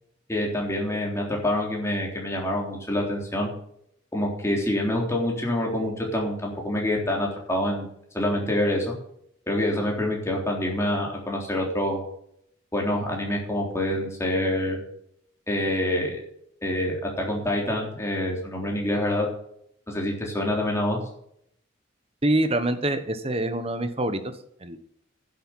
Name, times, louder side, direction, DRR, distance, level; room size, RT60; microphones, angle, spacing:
voice 1, 0.3-3.5 4.1-7.9 8.1-8.9 9.5-12.0 12.7-14.8 15.5-16.2 16.6-19.3 19.9-21.0, left 1 dB, 15° left, -1 dB, 3.6 m, -26 dB
voice 2, 22.2-24.2 24.6-24.8, right 1 dB, 30° right, 10 dB, 1.2 m, -25 dB
11.0 x 8.0 x 7.2 m, 0.70 s
head